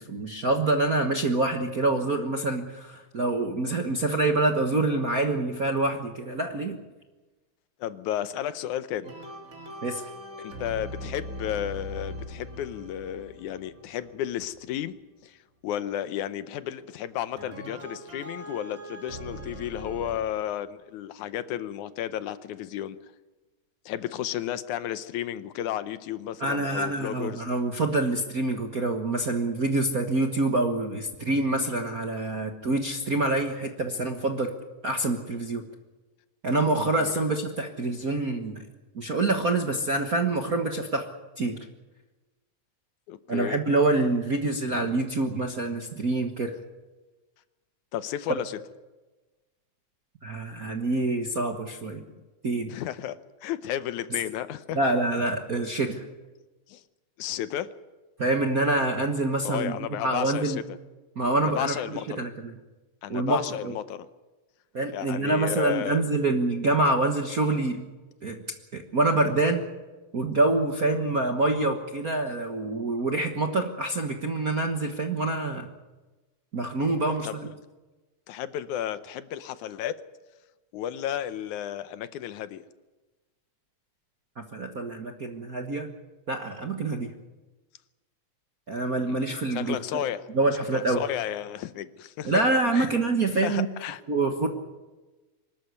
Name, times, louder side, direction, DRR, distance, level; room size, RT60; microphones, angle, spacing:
voice 1, 0.0-6.8 9.8-10.0 26.4-34.5 34.8-35.6 36.4-38.6 38.9-41.0 41.4-41.6 43.3-46.6 50.2-52.0 52.4-52.7 54.7-56.0 58.2-59.7 60.0-60.6 61.2-61.8 62.2-62.5 63.1-63.4 63.6-63.7 64.7-67.8 68.2-68.4 68.7-69.6 70.1-75.7 76.5-77.5 84.4-85.9 86.3-87.1 88.7-90.0 90.3-91.0 92.2-93.7 94.1-94.5, right 2 dB, 45° right, 4 dB, 1.1 m, -26 dB
voice 2, 7.8-9.1 10.4-15.0 15.2-23.0 23.9-27.4 37.0-37.2 43.1-43.6 47.9-48.6 52.1-52.2 52.7-54.8 56.7-56.8 57.2-57.7 59.4-60.6 61.4-62.3 63.0-64.1 64.9-66.0 77.1-77.4 78.3-80.0 80.7-82.6 86.9-87.0 89.1-89.2 89.5-90.3 90.7-92.4 92.7-92.9 93.3-94.0, left 11 dB, 80° left, 13 dB, 2.2 m, -33 dB
sound 1, 9.0-14.8 17.4-20.2, equal, 25° right, 3.3 m, -41 dB
25.0 x 13.0 x 9.5 m, 1.2 s
omnidirectional pair, 3.5 m